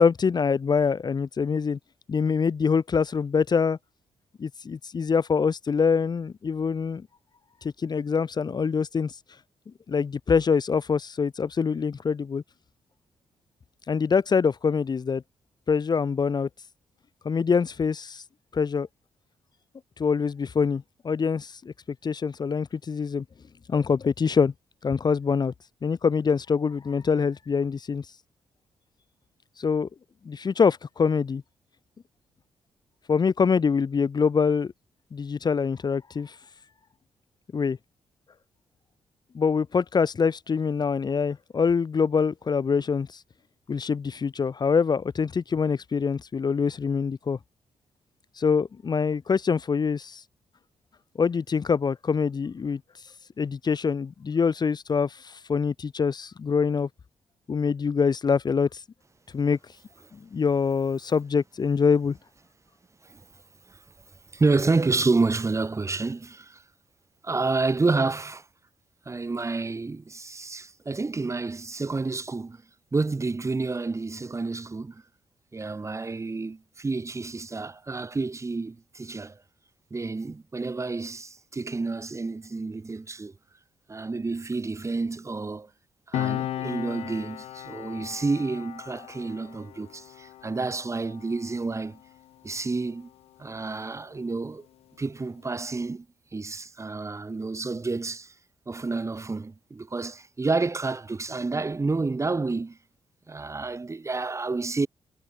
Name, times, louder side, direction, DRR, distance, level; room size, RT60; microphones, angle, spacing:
voice 1, 0.0-1.8 2.1-3.8 4.4-7.1 7.6-9.2 9.9-12.4 13.9-15.2 15.7-16.5 17.2-18.2 18.5-18.9 20.0-21.7 22.0-23.2 23.7-24.5 24.8-25.5 25.8-28.1 29.6-29.9 30.2-31.4 33.1-34.7 35.1-36.4 37.5-37.8 39.3-43.2 43.7-47.4 48.4-50.2 51.2-52.8 53.4-56.9 57.5-58.8 59.3-59.6 60.1-62.2, left 5 dB, 45° left, 1.0 m, -24 dB
voice 2, 64.3-66.6 67.2-68.4 69.1-72.6 72.9-75.0 75.5-79.4 79.9-83.3 83.9-85.7 86.1-92.0 92.4-93.1 93.4-94.7 95.0-96.1 96.3-98.3 98.7-102.8 103.3-104.9, right 3 dB, 30° right, 2.4 m, -29 dB
Piano, 86.1-93.2 93.4-93.7, left 13 dB, 85° left, 1.5 m, -36 dB
cardioid pair, 65°, 10 cm